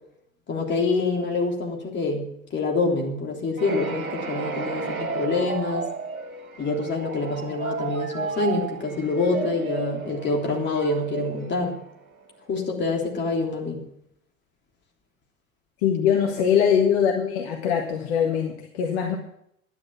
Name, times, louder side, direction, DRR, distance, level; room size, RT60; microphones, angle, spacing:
voice 1, 0.5-5.9 6.6-11.7 12.5-13.8, left 3 dB, 25° left, 1 dB, 3.4 m, -26 dB
sound 1, 3.6-12.3, right 5 dB, 80° right, 1.6 m, -33 dB
voice 2, 15.8-19.2, left 8 dB, 55° left, 3 dB, 1.7 m, -22 dB
12.0 x 10.5 x 6.0 m, 0.73 s
figure-of-eight pair, 85°, 41 cm